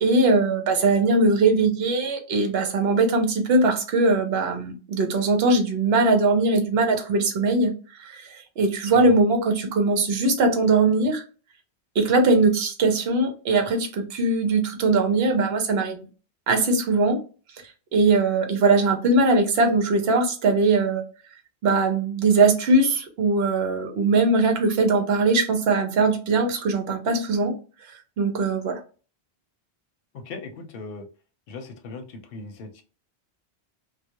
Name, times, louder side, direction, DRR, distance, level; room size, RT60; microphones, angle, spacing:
voice 1, 0.0-7.7 8.0-11.2 12.0-16.0 16.5-17.2 17.9-21.0 21.6-27.5 28.2-28.8, right 3 dB, 70° right, 5 dB, 0.9 m, -21 dB
voice 2, 30.1-31.1 31.5-32.8, left 3 dB, 60° left, 5 dB, 0.8 m, -38 dB
2.3 x 2.1 x 2.8 m, 0.36 s
omnidirectional pair, 1.1 m